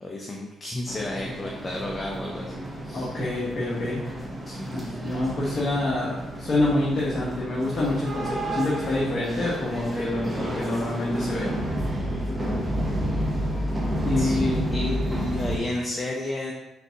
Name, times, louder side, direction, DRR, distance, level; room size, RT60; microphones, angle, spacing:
voice 1, 0.0-3.2 4.5-4.7 14.2-16.5, left 1 dB, 25° left, 0 dB, 0.5 m, -32 dB
sound 1, 0.9-15.6, right 1 dB, 20° right, 0.7 m, -30 dB
voice 2, 2.9-4.0 4.7-11.5 12.3-12.6 14.0-14.8, left 2 dB, 45° left, -6 dB, 1.0 m, -27 dB
3.8 x 3.5 x 2.8 m, 0.98 s
cardioid pair, 90°, 0 cm